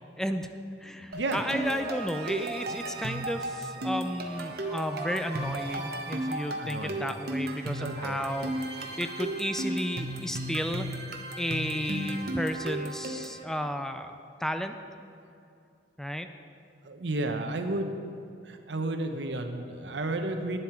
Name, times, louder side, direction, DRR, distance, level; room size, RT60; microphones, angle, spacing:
voice 1, 0.2-0.5 0.8-10.9 11.4-14.8 16.0-16.3, equal, 5° left, 8 dB, 0.4 m, -33 dB
sound 1, 1.1-13.4, right 1 dB, 60° right, 1.0 m, -35 dB
sound 2, 1.4-9.0, right 2 dB, 15° right, 2.7 m, -48 dB
voice 2, 6.6-7.0 7.8-8.2 16.8-17.9 18.4-20.6, right 2 dB, 80° right, 6 dB, 0.9 m, -32 dB
11.0 x 9.6 x 4.5 m, 2.6 s
head